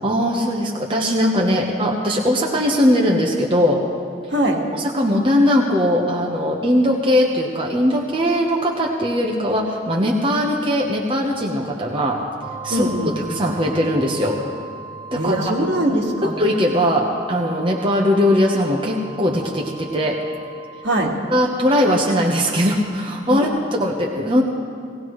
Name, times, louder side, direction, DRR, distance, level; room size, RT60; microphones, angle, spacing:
voice 1, 0.0-3.8 4.7-12.2 12.6-12.9 13.3-14.4 15.1-15.4 16.2-20.2 21.3-24.4, equal, 25° right, -2 dB, 1.0 m, -20 dB
voice 2, 4.3-4.6 12.7-13.2 15.1-16.3 20.8-21.1 23.3-23.5, right 1 dB, 70° right, -1 dB, 1.8 m, -21 dB
sound 1, 12.4-23.2, right 4 dB, ahead, 1.6 m, -39 dB
18.0 x 18.0 x 3.2 m, 2.3 s
head